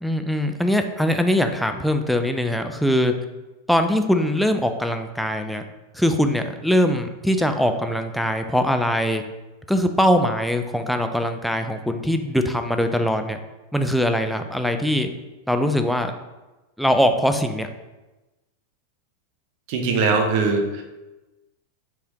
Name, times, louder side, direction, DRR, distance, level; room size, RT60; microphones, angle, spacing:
voice 1, 0.0-3.1 3.7-5.6 5.9-9.2 9.7-13.4 13.7-15.1 15.5-16.1 16.8-17.7, equal, ahead, 6 dB, 0.3 m, -22 dB
voice 2, 19.7-20.8, right 4 dB, 45° right, 3 dB, 0.7 m, -21 dB
4.4 x 3.3 x 2.9 m, 1.1 s
figure-of-eight pair, 90°, 0 cm